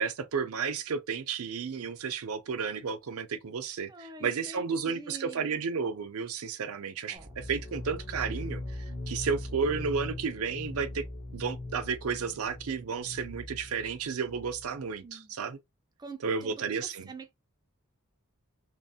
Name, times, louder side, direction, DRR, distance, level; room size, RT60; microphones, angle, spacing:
voice 1, 0.0-11.0 11.3-15.6 16.2-17.1, right 5 dB, 75° right, 0.5 m, -32 dB
voice 2, 3.9-5.6 7.1-7.3 15.0-15.3 16.0-17.3, right 3 dB, 20° right, 0.4 m, -46 dB
sound 1, 7.1-14.8, left 2 dB, 30° left, 0.7 m, -40 dB
3.0 x 2.0 x 2.7 m
head